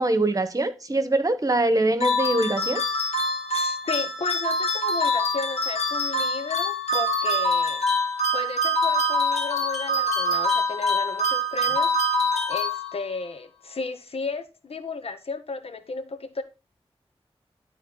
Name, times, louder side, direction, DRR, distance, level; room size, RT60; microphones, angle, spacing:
voice 1, 0.0-2.8, right 2 dB, 35° right, 1.3 m, -23 dB
sound 1, 2.0-13.2, left 1 dB, 85° left, 2.1 m, -25 dB
voice 2, 3.5-7.8 8.3-12.0 12.5-16.4, left 4 dB, 65° left, 1.1 m, -33 dB
12.0 x 4.0 x 4.0 m
cardioid pair, 50°, 11 cm